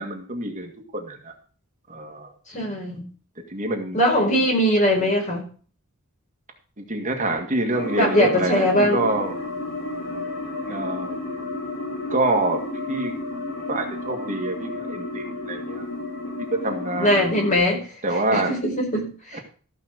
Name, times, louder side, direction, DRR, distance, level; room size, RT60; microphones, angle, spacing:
voice 1, 0.0-1.3 1.9-2.3 3.5-4.0 6.8-9.3 10.7-11.2 12.1-12.6 12.9-13.1 13.7-15.9 16.4-17.2 18.0-18.5 19.3-19.4, right 2 dB, 35° right, 2 dB, 1.9 m, -26 dB
voice 2, 2.5-3.0 3.9-5.4 8.0-9.1 17.0-17.9 18.3-19.4, equal, 35° left, 0 dB, 4.6 m, -21 dB
sound 1, 7.7-17.6, left 2 dB, 55° left, 6.8 m, -32 dB
14.5 x 5.6 x 6.4 m, 0.40 s
head